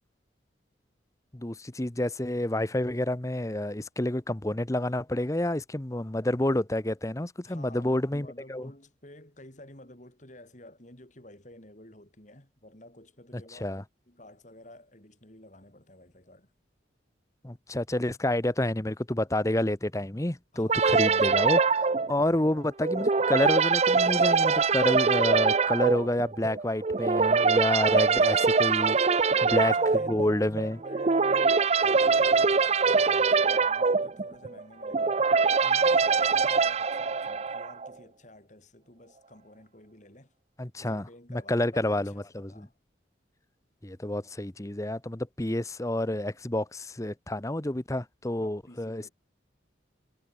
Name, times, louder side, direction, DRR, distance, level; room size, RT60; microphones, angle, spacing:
voice 1, 1.3-8.7 13.5-13.8 17.4-29.0 29.5-29.7 30.1-30.8 40.6-42.7 43.8-49.1, left 1 dB, 15° left, 0.9 m, -29 dB
voice 2, 7.4-16.5 20.5-21.0 29.1-35.2 35.6-40.3 40.8-42.7 48.4-49.1, left 1 dB, 40° left, 4.9 m, -51 dB
sound 1, 20.7-37.9, right 4 dB, 35° right, 0.5 m, -23 dB
head